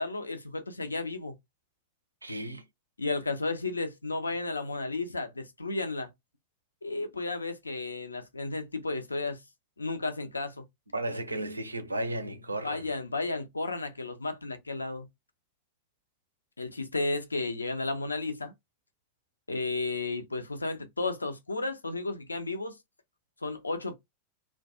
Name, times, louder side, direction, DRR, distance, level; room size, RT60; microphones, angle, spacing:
voice 1, 0.0-1.3 3.0-6.1 6.8-9.4 9.8-10.6 12.6-15.1 16.6-18.5 19.5-22.8 23.4-23.9, left 3 dB, 80° left, 0.4 m, -33 dB
voice 2, 2.2-2.6 10.9-12.9, right 1 dB, 80° right, 0.4 m, -34 dB
2.2 x 2.2 x 2.6 m
figure-of-eight pair, 90°, 0 cm